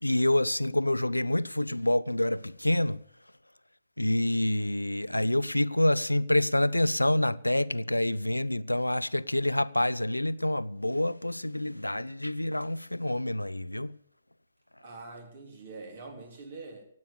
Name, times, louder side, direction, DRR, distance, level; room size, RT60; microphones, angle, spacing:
voice 1, 0.0-3.0 4.0-14.0, left 1 dB, 85° left, 0.5 m, -27 dB
voice 2, 14.8-16.8, right 3 dB, 45° right, 3.4 m, -44 dB
17.0 x 9.3 x 6.8 m
figure-of-eight pair, 130°, 0 cm